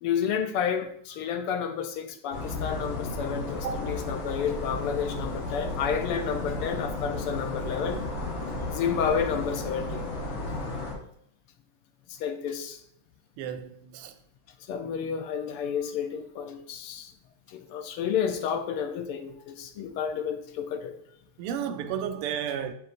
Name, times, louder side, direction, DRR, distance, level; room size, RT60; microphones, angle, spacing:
voice 1, 0.0-8.0 8.7-10.0 12.1-12.8 14.7-17.1 17.5-20.9, left 7 dB, 85° left, 1.6 m, -30 dB
sound 1, 2.3-10.9, left 2 dB, 70° left, 1.9 m, -33 dB
voice 2, 13.4-14.1 21.4-22.7, right 8 dB, 90° right, 1.6 m, -32 dB
8.2 x 5.3 x 2.5 m
omnidirectional pair, 2.4 m